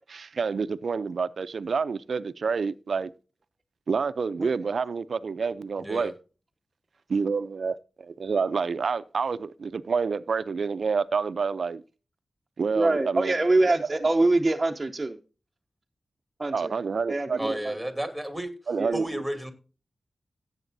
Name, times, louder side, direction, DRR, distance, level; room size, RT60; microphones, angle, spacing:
voice 1, 0.1-3.1 3.9-6.1 7.1-11.8 12.6-13.3 13.6-13.7 16.5-17.5 18.7-19.2, right 5 dB, 70° right, 0.5 m, -28 dB
voice 2, 5.8-6.1 17.4-18.5 18.9-19.5, right 1 dB, ahead, 2.4 m, -32 dB
voice 3, 12.7-15.2 16.4-16.8 17.1-17.8 18.8-19.0, right 2 dB, 25° right, 0.8 m, -24 dB
17.0 x 8.0 x 2.7 m
wide cardioid pair, 90°, 0 cm